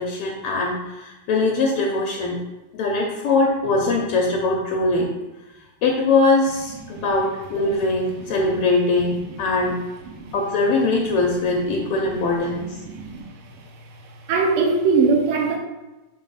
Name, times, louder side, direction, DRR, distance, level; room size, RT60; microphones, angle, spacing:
voice 1, 0.0-2.4 2.7-5.1 5.8-9.8 10.3-12.8, left 3 dB, 80° left, 0 dB, 1.3 m, -21 dB
voice 2, 11.7-12.1 12.6-13.6 14.2-15.6, right 4 dB, 65° right, 0 dB, 1.5 m, -22 dB
4.5 x 3.8 x 5.5 m, 1.1 s
omnidirectional pair, 3.3 m